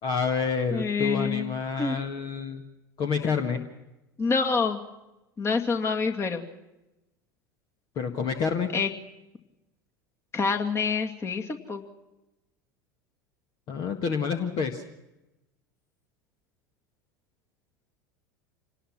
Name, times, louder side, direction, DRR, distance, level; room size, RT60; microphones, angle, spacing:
voice 1, 0.0-2.6 3.0-3.6 8.0-8.7 13.7-14.8, left 5 dB, 40° left, 6 dB, 1.7 m, -28 dB
voice 2, 0.7-1.5 1.8-2.0 4.2-4.8 5.4-6.5 8.7-8.9 10.3-11.8, left 5 dB, 25° left, 4 dB, 2.3 m, -27 dB
27.0 x 19.0 x 6.1 m, 0.97 s
figure-of-eight pair, 75°, 11 cm